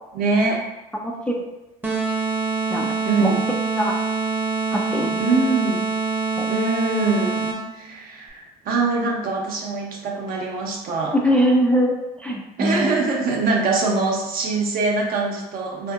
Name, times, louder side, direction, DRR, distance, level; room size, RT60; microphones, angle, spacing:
voice 1, 0.1-0.6 3.0-3.4 5.2-5.9 6.5-11.2 12.6-15.9, right 3 dB, 50° right, 0 dB, 0.7 m, -23 dB
voice 2, 0.9-1.5 2.7-2.9 3.2-3.3 3.8-3.9 4.7-5.1 6.4-6.5 11.1-12.0 12.2-12.9, equal, 5° left, -1 dB, 0.4 m, -21 dB
sound 1, 1.8-7.8, right 4 dB, 10° right, 0.7 m, -25 dB
2.6 x 2.6 x 2.4 m, 1.0 s
hypercardioid pair, 70°, 19 cm